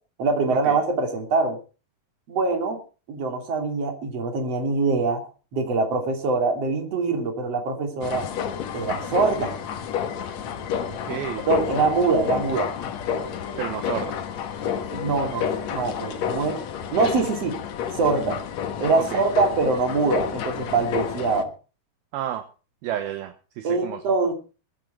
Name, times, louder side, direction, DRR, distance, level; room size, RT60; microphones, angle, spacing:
voice 1, 0.2-1.6 2.3-2.8 3.1-5.2 5.5-8.3 8.7-9.5 11.5-12.7 14.9-15.5 15.7-16.6 16.9-17.6 18.0-18.4 18.8-21.5 23.6-24.3, right 4 dB, 40° right, 4 dB, 3.7 m, -23 dB
sound 1, 8.0-21.4, left 8 dB, 60° left, 1.9 m, -30 dB
voice 2, 10.9-11.4 13.6-14.2 19.0-19.2 22.1-22.4 22.8-24.0, right 11 dB, 70° right, 7 dB, 2.7 m, -31 dB
22.5 x 9.2 x 4.5 m, 0.36 s
omnidirectional pair, 4.7 m